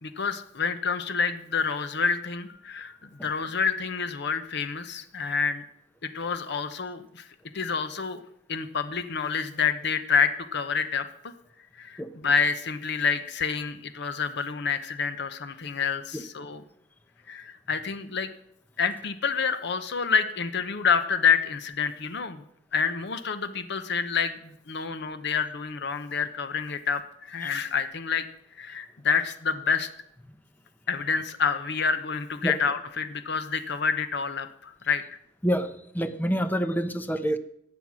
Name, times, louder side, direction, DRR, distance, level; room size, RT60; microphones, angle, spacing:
voice 1, 0.0-3.0 3.2-5.6 6.0-7.3 7.5-8.2 8.5-11.3 11.8-16.6 17.3-18.3 18.8-22.4 22.7-28.3 28.6-29.9 30.9-35.0, left 6 dB, 65° left, 11 dB, 0.9 m, -28 dB
voice 2, 35.4-37.4, equal, 10° left, 10 dB, 0.9 m, -27 dB
15.5 x 9.0 x 6.2 m, 0.70 s
head